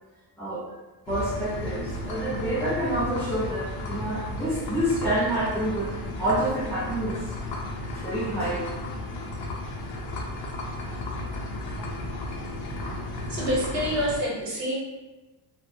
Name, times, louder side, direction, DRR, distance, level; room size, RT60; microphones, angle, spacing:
voice 1, 0.4-0.8 1.1-5.9 6.2-7.3 7.9-8.7, right 1 dB, 5° left, -9 dB, 0.6 m, -28 dB
sound 1, 1.1-14.2, left 1 dB, 65° left, 0.6 m, -34 dB
voice 2, 13.3-14.8, equal, 55° right, -4 dB, 0.9 m, -27 dB
2.3 x 2.1 x 2.7 m, 1.2 s
cardioid pair, 155°, 42 cm